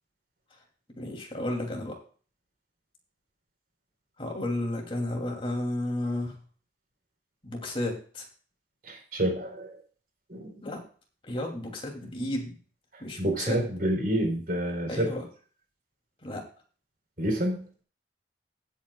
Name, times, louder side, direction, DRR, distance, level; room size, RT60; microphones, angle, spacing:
voice 1, 1.0-2.0 4.2-6.4 7.4-8.2 10.6-10.8 11.2-12.6 13.0-13.6 14.9-15.2 16.2-16.4, left 1 dB, 30° left, 1 dB, 2.9 m, -32 dB
voice 2, 8.8-9.8 10.3-10.6 12.9-15.1 17.2-17.7, right 1 dB, 55° right, 1 dB, 4.2 m, -29 dB
18.0 x 8.4 x 2.4 m, 0.41 s
head